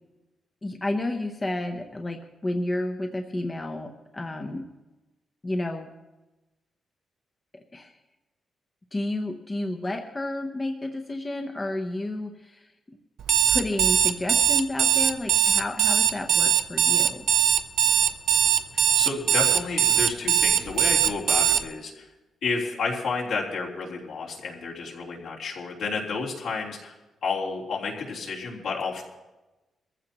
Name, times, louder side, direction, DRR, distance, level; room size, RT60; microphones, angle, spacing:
voice 1, 0.6-4.7 5.4-5.9 7.7-7.9 8.9-13.0 13.5-17.3, left 1 dB, 15° left, 4 dB, 0.7 m, -31 dB
Alarm, 13.2-21.6, right 10 dB, 80° right, 0.6 m, -21 dB
voice 2, 18.7-22.1 22.4-27.0 27.2-29.0, left 4 dB, 70° left, -4 dB, 3.4 m, -31 dB
23.0 x 15.0 x 2.9 m, 1.1 s
wide cardioid pair, 170°, 0 cm